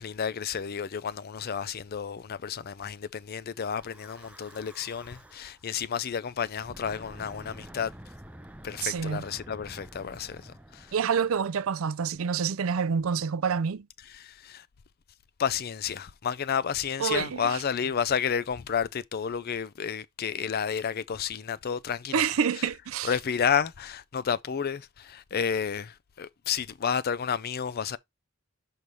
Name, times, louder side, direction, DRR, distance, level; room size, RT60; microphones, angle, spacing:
voice 1, 0.0-7.9 8.6-10.9 14.0-14.7 15.4-22.7 23.0-28.0, left 7 dB, 45° left, 0.4 m, -31 dB
Breathing / Wind, 3.7-5.6 6.5-11.9, right 1 dB, 5° right, 0.5 m, -49 dB
voice 2, 8.8-9.2 10.9-13.9 17.0-17.4 22.1-23.1, right 6 dB, 70° right, 0.5 m, -27 dB
6.2 x 3.3 x 5.3 m
head